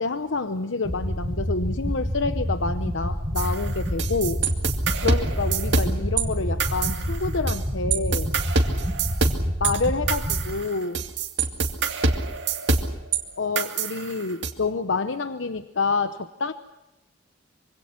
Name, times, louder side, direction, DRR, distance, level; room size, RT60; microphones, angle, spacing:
voice 1, 0.0-4.4 5.0-8.3 9.6-11.0 13.4-16.5, left 3 dB, 85° left, 10 dB, 0.9 m, -28 dB
sound 1, 0.8-10.4, equal, 15° right, 3.8 m, -28 dB
sound 2, 3.4-6.2 6.6-7.6 7.9-13.2 13.6-14.5, right 4 dB, 65° right, 2.3 m, -25 dB
25.0 x 24.5 x 5.8 m, 0.95 s
head